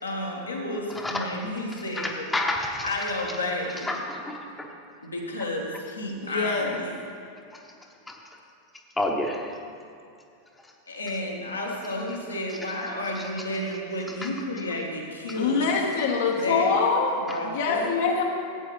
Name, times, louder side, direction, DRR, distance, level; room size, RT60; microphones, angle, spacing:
voice 1, 0.0-2.3 2.8-3.9 5.0-7.0 10.9-15.7 16.3-16.8 17.1-18.0, left 1 dB, 80° left, -2 dB, 1.5 m, -31 dB
voice 2, 0.9-1.3 2.0-2.9 3.9-4.7 8.1-8.2 9.0-9.6 17.3-17.4, left 1 dB, 10° left, 1 dB, 1.0 m, -29 dB
voice 3, 6.2-6.8 15.4-17.2 17.5-18.2, left 5 dB, 60° left, 0 dB, 1.0 m, -24 dB
13.5 x 8.5 x 3.3 m, 2.5 s
figure-of-eight pair, 90°, 0 cm